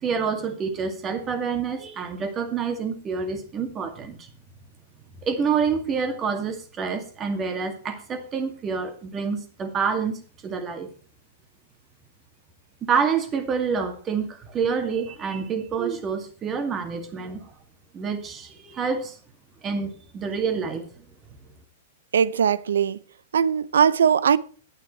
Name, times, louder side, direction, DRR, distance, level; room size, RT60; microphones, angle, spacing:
voice 1, 0.0-4.3 5.2-10.9 12.8-17.5 17.9-19.2 19.6-21.0, right 6 dB, 25° right, 2.3 m, -27 dB
voice 2, 22.1-23.0 23.3-24.4, right 7 dB, 75° right, 0.6 m, -20 dB
10.5 x 8.8 x 4.5 m
hypercardioid pair, 110°, 0 cm